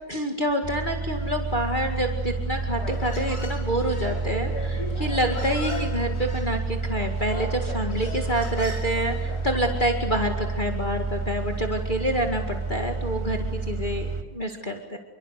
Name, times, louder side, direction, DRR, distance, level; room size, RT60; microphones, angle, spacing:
voice 1, 0.1-15.0, equal, 25° left, 3 dB, 2.2 m, -27 dB
sound 1, 0.6-14.2, right 3 dB, 15° right, 1.5 m, -30 dB
Human voice, 2.8-9.8, left 2 dB, 55° left, 3.7 m, -39 dB
28.0 x 23.5 x 8.3 m, 1.1 s
omnidirectional pair, 1.9 m